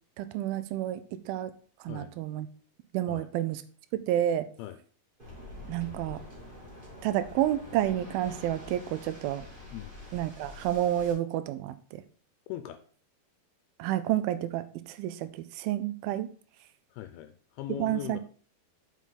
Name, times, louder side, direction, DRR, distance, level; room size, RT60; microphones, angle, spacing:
voice 1, 0.2-1.5 1.8-2.5 2.9-3.6 4.1-4.5 5.7-6.2 7.0-9.5 10.1-12.0 13.8-16.3 17.8-18.2, right 12 dB, 80° right, 12 dB, 2.3 m, -30 dB
Waves surf, 5.2-11.1, left 1 dB, 15° right, 1.8 m, -46 dB
voice 2, 12.5-12.8 16.9-18.2, left 12 dB, 80° left, 9 dB, 2.5 m, -39 dB
7.4 x 5.6 x 3.8 m, 0.43 s
omnidirectional pair, 4.6 m